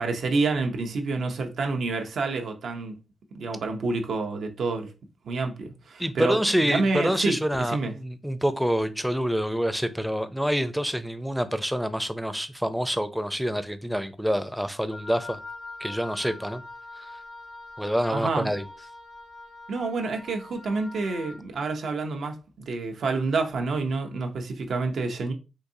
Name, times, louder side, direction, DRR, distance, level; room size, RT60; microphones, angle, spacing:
voice 1, 0.0-3.0 3.3-4.9 5.2-7.9 18.1-18.5 19.7-25.3, right 3 dB, 75° right, 0.6 m, -28 dB
voice 2, 6.0-15.4 15.8-16.6 17.0-17.2 17.8-18.7, equal, ahead, 0.5 m, -27 dB
Wind instrument woodwind instrument, 14.9-21.4, left 2 dB, 75° left, 0.9 m, -43 dB
3.8 x 2.6 x 2.7 m
cardioid pair, 80°, 0 cm